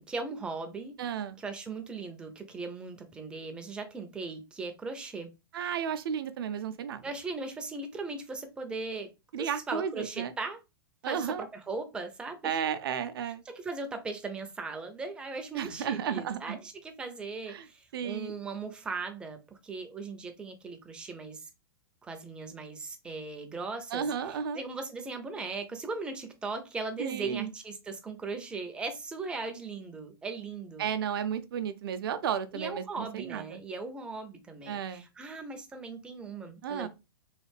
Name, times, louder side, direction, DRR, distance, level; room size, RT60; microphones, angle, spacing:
voice 1, 0.0-1.0 1.4-5.3 5.6-5.7 7.0-9.1 9.4-10.6 11.0-12.6 13.5-21.5 22.0-30.9 32.5-36.9, right 3 dB, 5° right, 0.4 m, -38 dB
voice 2, 1.0-1.4 5.5-7.1 9.3-10.3 11.0-11.5 12.4-13.4 15.5-16.6 17.5-17.7 17.9-18.3 23.9-24.6 27.0-27.5 30.8-33.4 34.7-35.0 36.6-36.9, right 8 dB, 70° right, 0.5 m, -33 dB
3.2 x 2.4 x 3.2 m
hypercardioid pair, 155°, 13 cm